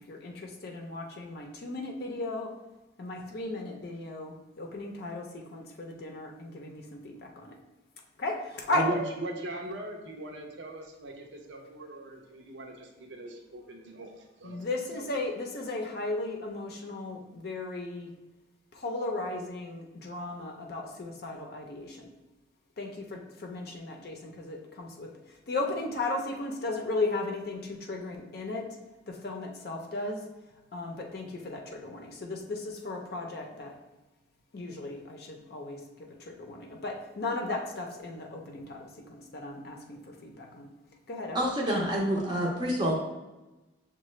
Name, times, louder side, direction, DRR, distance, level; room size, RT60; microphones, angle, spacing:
voice 1, 0.1-2.5 3.0-7.5 8.2-8.8 14.4-18.1 18.7-22.1 22.8-28.7 29.1-30.2 30.7-33.7 34.5-40.7 41.1-41.4, left 2 dB, 55° left, 1 dB, 0.5 m, -36 dB
voice 2, 8.7-15.1, right 2 dB, 80° right, 2 dB, 0.6 m, -39 dB
voice 3, 41.3-42.9, equal, 25° right, -3 dB, 0.5 m, -27 dB
6.4 x 2.2 x 3.0 m, 1.1 s
head